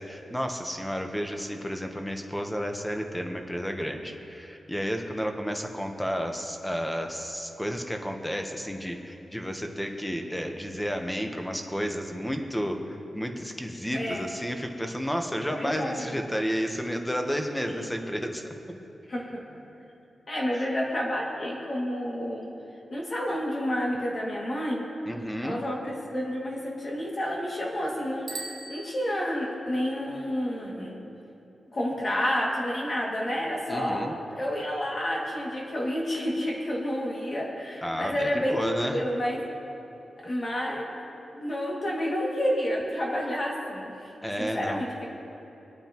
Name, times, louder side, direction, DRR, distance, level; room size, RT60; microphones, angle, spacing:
voice 1, 0.0-18.4 20.5-20.7 25.0-25.7 33.7-34.2 37.8-39.0 44.2-44.8, equal, 5° left, 4 dB, 1.0 m, -32 dB
voice 2, 13.9-14.2 15.4-16.0 17.6-17.9 19.1-19.4 20.3-22.5 22.9-24.9 25.4-31.0 31.7-34.1 34.4-39.5 40.2-40.9 41.3-44.1 44.4-45.1, equal, 40° left, -3 dB, 2.2 m, -30 dB
Bicycle bell, 28.2-29.6, right 3 dB, 55° right, 1.2 m, -40 dB
25.5 x 8.8 x 3.0 m, 2.9 s
wide cardioid pair, 130°, 0 cm